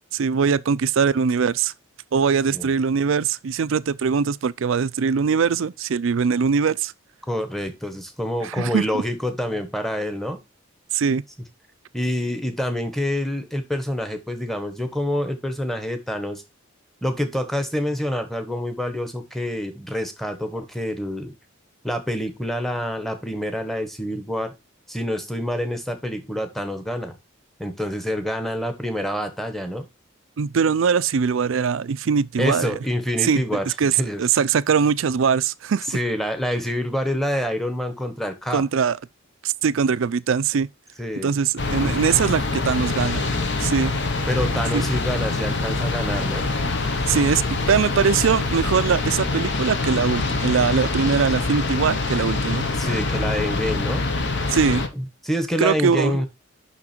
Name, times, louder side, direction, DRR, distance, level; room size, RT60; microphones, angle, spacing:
voice 1, 0.1-1.7 2.1-6.9 8.4-9.0 10.9-11.2 30.4-32.8 33.2-35.9 38.5-39.0 39.4-40.7 41.2-43.3 43.6-43.9 44.7-44.8 47.1-47.4 47.7-52.7 54.5-54.8 55.6-56.2, right 6 dB, 70° right, 0.4 m, -21 dB
voice 2, 7.3-10.4 11.9-16.4 17.0-21.3 21.8-24.5 24.9-27.2 27.6-29.8 32.4-34.2 35.9-38.6 41.0-41.3 44.3-46.5 52.8-54.1 55.0-56.3, equal, ahead, 1.1 m, -27 dB
sound 1, 41.6-54.9, left 3 dB, 60° left, 1.1 m, -25 dB
6.1 x 5.9 x 4.4 m
head